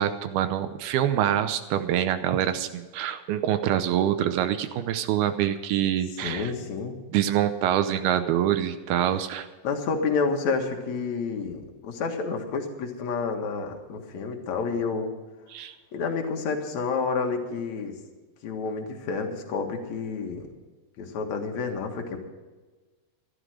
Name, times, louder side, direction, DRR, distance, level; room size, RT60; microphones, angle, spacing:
voice 1, 0.0-6.5 7.1-9.5 15.5-15.7, right 11 dB, 75° right, 10 dB, 2.5 m, -25 dB
voice 2, 6.2-7.0 9.6-15.1 15.9-17.9 18.4-20.5 21.0-22.2, left 4 dB, 55° left, 3 dB, 2.5 m, -29 dB
15.0 x 13.0 x 5.0 m, 1.3 s
omnidirectional pair, 4.9 m